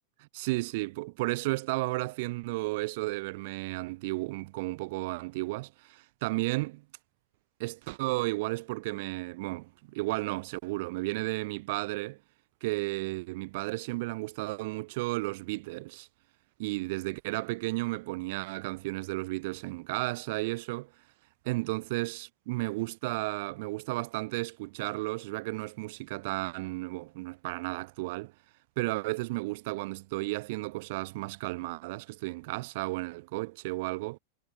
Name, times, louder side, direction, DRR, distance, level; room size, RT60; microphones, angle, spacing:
voice 1, 0.3-6.8 7.6-12.2 12.6-16.1 16.6-20.9 21.4-28.3 28.8-34.2, right 22 dB, 50° right, 0.5 m, -33 dB
figure-of-eight pair, 90°, 0 cm